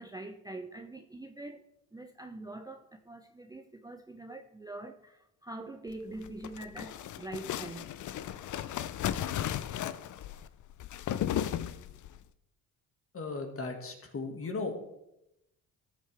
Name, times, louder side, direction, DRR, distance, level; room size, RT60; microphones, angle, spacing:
voice 1, 0.0-1.6 1.9-7.9, right 2 dB, 10° right, 6 dB, 0.6 m, -44 dB
sound 1, 6.1-12.2, left 11 dB, 55° left, 0.6 m, -35 dB
voice 2, 13.1-14.7, left 3 dB, 35° left, 4 dB, 2.0 m, -36 dB
13.0 x 7.5 x 3.5 m, 0.86 s
supercardioid pair, 70°, 37 cm